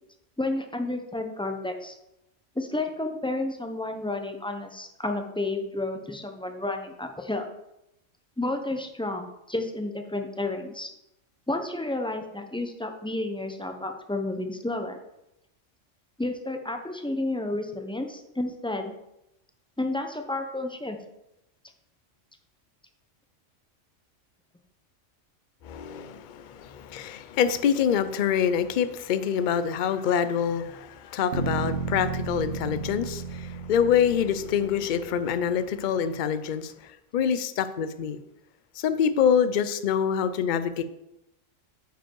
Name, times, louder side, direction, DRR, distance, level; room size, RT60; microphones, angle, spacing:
voice 1, 0.4-1.9 2.6-7.5 8.4-10.9 11.5-15.0 16.2-18.9 19.8-21.0, left 2 dB, 5° left, 5 dB, 0.4 m, -31 dB
voice 2, 25.6-38.2 38.7-40.8, left 8 dB, 55° left, 12 dB, 0.5 m, -26 dB
sound 1, 31.3-35.4, right 5 dB, 60° right, 1.2 m, -33 dB
9.0 x 5.2 x 4.6 m, 0.87 s
omnidirectional pair, 1.3 m